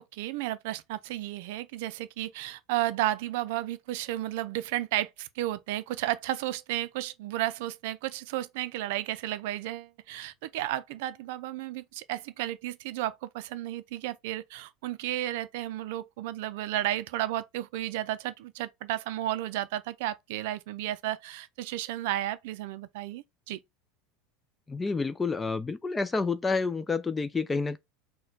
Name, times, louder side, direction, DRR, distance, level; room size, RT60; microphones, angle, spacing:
voice 1, 0.0-23.6, right 14 dB, 70° right, 0.4 m, -33 dB
voice 2, 24.7-27.8, left 4 dB, 15° left, 0.5 m, -29 dB
4.1 x 2.2 x 4.0 m
hypercardioid pair, 90°, 0 cm